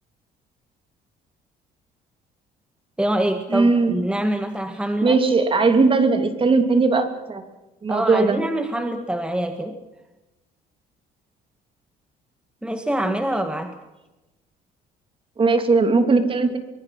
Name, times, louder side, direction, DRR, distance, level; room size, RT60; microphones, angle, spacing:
voice 1, 3.0-5.2 7.9-9.8 12.6-13.8, right 1 dB, 5° right, 7 dB, 1.8 m, -25 dB
voice 2, 3.5-4.0 5.0-7.4 7.8-8.4 15.4-16.6, right 3 dB, 30° right, 8 dB, 3.0 m, -18 dB
24.5 x 22.0 x 5.8 m, 1.0 s
cardioid pair, 110°, 17 cm